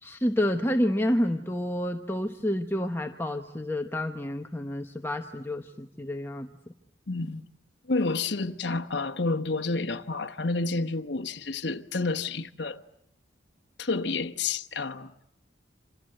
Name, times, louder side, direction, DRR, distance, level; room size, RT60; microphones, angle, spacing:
voice 1, 0.0-6.5, left 1 dB, 10° left, 1.0 m, -29 dB
voice 2, 7.1-7.4 7.9-12.8 13.8-15.1, left 3 dB, 65° left, 1.2 m, -29 dB
28.0 x 26.5 x 7.8 m
head